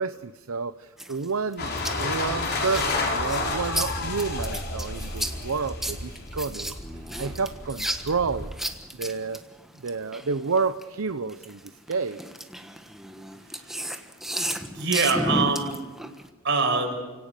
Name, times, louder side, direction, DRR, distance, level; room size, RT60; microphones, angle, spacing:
voice 1, 0.0-8.5 8.9-9.4 9.8-12.2, right 4 dB, 80° right, 12 dB, 0.7 m, -30 dB
sound 1, 1.0-10.8 11.3-16.3, equal, ahead, 1.4 m, -34 dB
sound 2, 1.6-8.5, left 2 dB, 50° left, 4.5 m, -31 dB
voice 2, 14.7-15.8 16.4-17.0, right 4 dB, 60° right, 3 dB, 6.1 m, -24 dB
29.5 x 18.0 x 6.7 m, 1.3 s
head